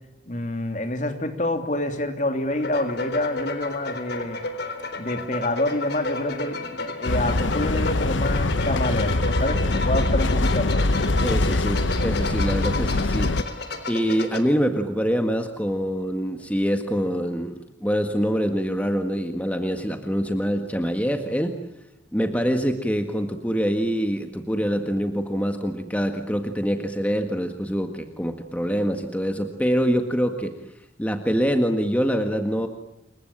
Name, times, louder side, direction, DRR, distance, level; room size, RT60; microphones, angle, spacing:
voice 1, 0.3-4.4 5.0-10.9, left 1 dB, 40° left, 7 dB, 3.0 m, -27 dB
sound 1, 2.5-14.4, left 2 dB, 55° left, 3.8 m, -32 dB
sound 2, 7.0-13.4, left 2 dB, 80° left, 1.0 m, -23 dB
voice 2, 11.2-13.3 13.9-21.6 22.1-30.5 31.0-32.7, equal, 10° left, 5 dB, 1.7 m, -25 dB
28.0 x 23.5 x 8.9 m, 0.85 s
head